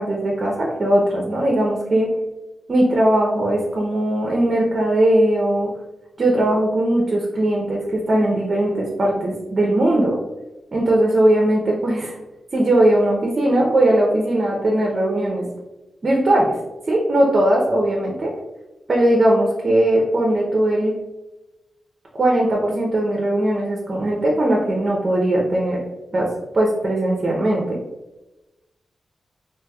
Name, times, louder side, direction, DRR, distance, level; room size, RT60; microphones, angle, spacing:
voice 1, 0.0-2.1 2.7-5.7 6.2-10.2 10.7-12.2 12.5-15.5 16.0-16.6 16.9-18.3 18.9-20.9 22.2-25.8 26.1-26.3 26.5-27.8, right 1 dB, 50° right, -2 dB, 0.6 m, -19 dB
3.3 x 2.8 x 2.3 m, 1.0 s
cardioid pair, 70°, 0 cm